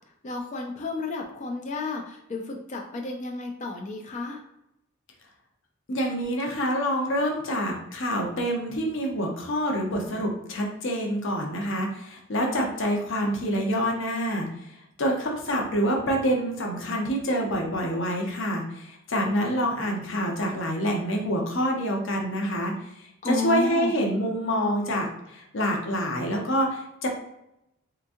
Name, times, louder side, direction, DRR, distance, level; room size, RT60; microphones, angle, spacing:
voice 1, 0.2-4.4 23.2-23.9, left 4 dB, 35° left, 1 dB, 0.4 m, -32 dB
voice 2, 5.9-27.1, equal, 60° left, 1 dB, 0.8 m, -27 dB
3.4 x 2.9 x 2.6 m, 0.84 s
head